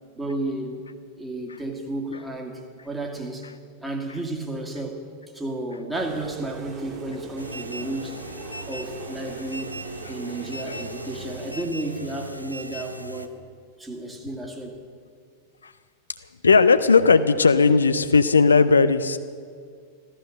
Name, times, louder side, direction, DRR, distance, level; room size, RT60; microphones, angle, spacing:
voice 1, 0.2-0.8 1.2-3.5 3.8-5.0 5.3-8.2 8.7-9.7 10.1-13.3 13.8-14.8, right 2 dB, 10° right, 1 dB, 2.2 m, -32 dB
sound 1, 5.9-11.6, right 4 dB, 30° right, 3.5 m, -41 dB
sound 2, 7.4-13.3, right 1 dB, 90° right, 0.7 m, -37 dB
voice 2, 16.4-19.2, left 4 dB, 75° left, 11 dB, 0.5 m, -17 dB
14.5 x 14.0 x 6.5 m, 2.1 s
figure-of-eight pair, 90°, 0 cm